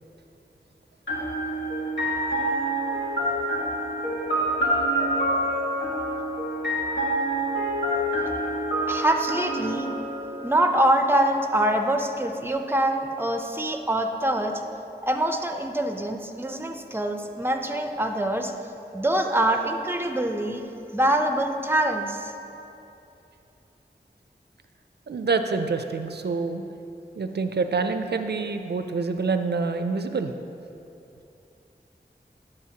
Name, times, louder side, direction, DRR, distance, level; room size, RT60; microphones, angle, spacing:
sound 1, 1.1-10.9, right 1 dB, 85° left, 1.2 m, -27 dB
voice 1, 8.9-9.9 10.4-14.6 15.0-18.5 18.9-20.6 20.9-22.3, right 1 dB, 10° right, 4 dB, 0.5 m, -24 dB
voice 2, 25.1-26.6 27.2-30.3, right 4 dB, 70° right, 8 dB, 0.4 m, -26 dB
8.6 x 6.4 x 2.8 m, 2.8 s
wide cardioid pair, 50°, 18 cm